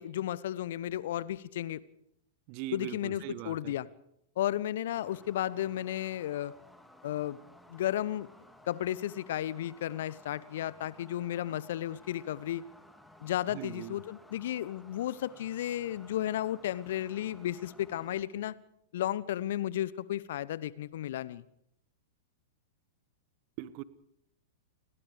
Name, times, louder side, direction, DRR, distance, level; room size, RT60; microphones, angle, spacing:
voice 1, 0.0-1.8 2.7-3.9 4.4-6.5 7.0-7.4 7.7-8.3 8.7-12.7 13.2-18.5 18.9-21.4, left 12 dB, 60° left, 20 dB, 1.0 m, -33 dB
voice 2, 2.5-3.7 13.5-14.0 23.6-23.8, right 14 dB, 45° right, 17 dB, 1.4 m, -40 dB
sound 1, 4.9-18.2, left 1 dB, 5° left, 2.9 m, -57 dB
29.5 x 22.0 x 5.1 m, 0.77 s
figure-of-eight pair, 100°, 0 cm